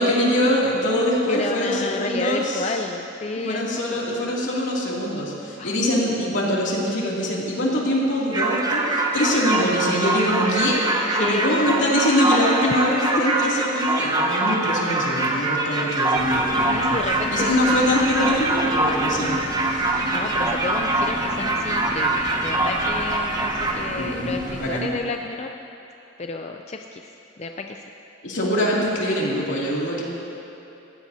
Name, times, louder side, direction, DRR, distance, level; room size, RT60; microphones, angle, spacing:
voice 1, 0.0-2.7 3.3-17.0 17.3-20.1 24.0-24.9 28.2-30.0, left 1 dB, 70° left, -5 dB, 2.7 m, -23 dB
voice 2, 1.3-3.8 5.6-5.8 11.1-11.5 16.7-17.8 20.1-25.5 26.2-27.1 27.4-27.8, left 3 dB, 35° left, 4 dB, 0.4 m, -31 dB
sound 1, 8.3-23.7, right 2 dB, 20° right, 1.0 m, -24 dB
sound 2, 16.1-24.8, equal, 45° right, 1.9 m, -33 dB
20.0 x 15.5 x 2.8 m, 2.9 s
head